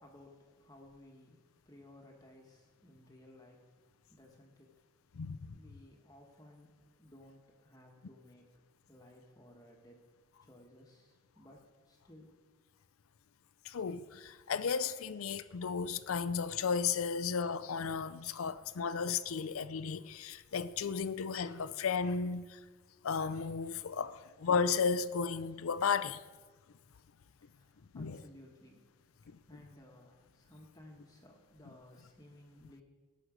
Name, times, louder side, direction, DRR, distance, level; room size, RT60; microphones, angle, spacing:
voice 1, 0.0-3.8 4.1-4.8 5.5-8.6 8.9-10.0 10.4-12.3 27.5-28.8 29.5-32.8, left 1 dB, 15° left, 1.2 m, -58 dB
voice 2, 13.7-22.5 23.0-26.2 27.9-28.2, left 5 dB, 80° left, 0.5 m, -34 dB
18.0 x 6.3 x 4.9 m
head